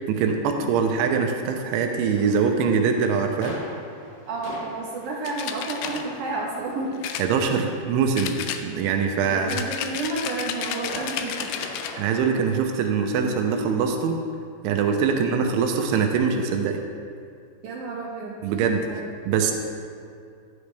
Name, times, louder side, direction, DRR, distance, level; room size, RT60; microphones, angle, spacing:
voice 1, 0.1-3.5 7.2-8.4 8.6-9.5 12.0-14.2 14.6-16.8 18.4-18.9 19.3-19.5, right 6 dB, 85° right, 4 dB, 3.3 m, -23 dB
sound 1, 2.1-13.7, left 1 dB, 60° left, 3.8 m, -43 dB
voice 2, 4.3-7.0 9.3-11.6 15.1-15.3 17.6-18.4 18.8-19.1, right 3 dB, 70° right, -3 dB, 1.9 m, -31 dB
sound 2, 5.3-6.0 7.0-7.8 8.2-9.0 9.5-12.0, left 8 dB, 85° left, 2.3 m, -32 dB
15.0 x 12.0 x 3.4 m, 2.4 s
omnidirectional pair, 5.3 m